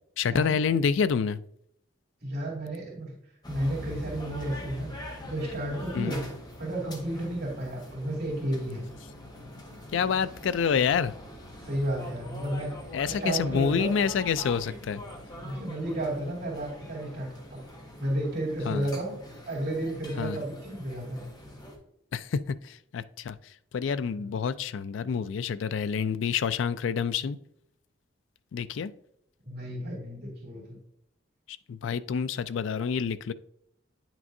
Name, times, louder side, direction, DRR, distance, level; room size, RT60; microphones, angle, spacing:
voice 1, 0.2-1.4 5.9-6.2 9.9-11.1 12.9-15.0 18.7-18.9 20.2-20.4 22.1-23.4 23.7-27.4 28.5-28.9 31.7-33.3, left 6 dB, 85° left, 15 dB, 0.4 m, -28 dB
voice 2, 2.2-3.1 3.5-4.9 5.2-6.3 6.6-8.9 11.6-12.7 13.2-13.9 15.2-17.6 18.0-19.2 19.5-21.2 24.2-24.3 29.4-30.6, right 1 dB, 60° right, -3 dB, 2.4 m, -32 dB
sound 1, 3.4-21.8, left 1 dB, 25° left, 1.3 m, -43 dB
9.3 x 6.0 x 2.6 m, 0.73 s
head